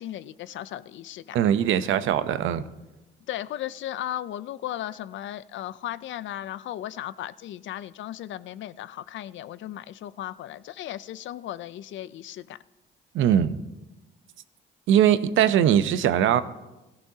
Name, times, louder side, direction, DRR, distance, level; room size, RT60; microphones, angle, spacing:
voice 1, 0.0-1.4 3.3-12.6, left 12 dB, 70° left, 0.5 m, -36 dB
voice 2, 1.3-2.6 13.1-13.6 14.9-16.4, right 10 dB, 80° right, 0.8 m, -21 dB
17.0 x 14.0 x 2.8 m
cardioid pair, 90°, 20 cm